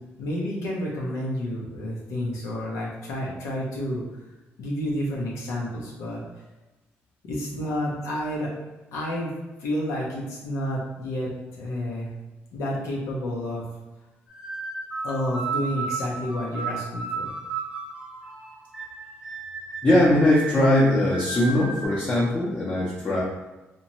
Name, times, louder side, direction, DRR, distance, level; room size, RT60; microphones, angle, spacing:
voice 1, 0.2-4.0 4.6-6.2 7.2-8.5 8.9-9.3 9.6-11.3 11.6-12.1 12.5-13.6 15.0-17.3, left 1 dB, 90° left, -4 dB, 0.6 m, -30 dB
sound 1, 14.3-21.8, right 4 dB, 15° right, 0.8 m, -34 dB
voice 2, 19.8-23.2, left 1 dB, 30° left, -8 dB, 0.7 m, -20 dB
2.7 x 2.1 x 2.9 m, 1.1 s
cardioid pair, 90°, 5 cm